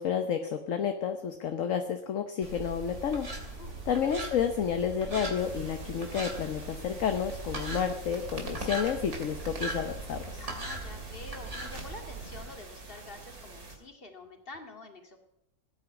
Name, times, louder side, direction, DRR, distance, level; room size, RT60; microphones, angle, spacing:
voice 1, 0.0-3.3 3.9-10.2, left 8 dB, 60° left, 7 dB, 1.3 m, -30 dB
sound 1, 2.4-12.4, right 2 dB, 50° right, 3.3 m, -40 dB
voice 2, 3.4-3.8 10.4-15.2, left 2 dB, 35° left, 5 dB, 2.3 m, -47 dB
sound 2, 5.4-13.7, right 2 dB, 75° right, 3.0 m, -45 dB
17.0 x 9.7 x 8.1 m, 0.84 s
omnidirectional pair, 1.6 m